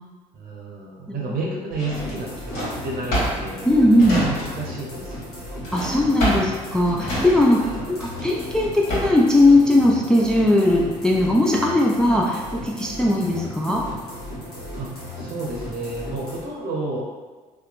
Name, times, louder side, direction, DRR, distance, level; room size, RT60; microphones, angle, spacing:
voice 1, 0.3-5.5 7.6-8.0 14.7-17.0, right 2 dB, 50° right, -2 dB, 0.7 m, -31 dB
Drawer open or close, 1.7-4.8 5.1-9.3, equal, 60° left, 1.1 m, -28 dB
sound 1, 1.9-16.4, left 1 dB, 90° left, 0.8 m, -36 dB
voice 2, 3.6-4.2 5.7-13.8, left 1 dB, 5° left, -2 dB, 0.3 m, -19 dB
2.8 x 2.1 x 2.5 m, 1.3 s
hypercardioid pair, 55°, 19 cm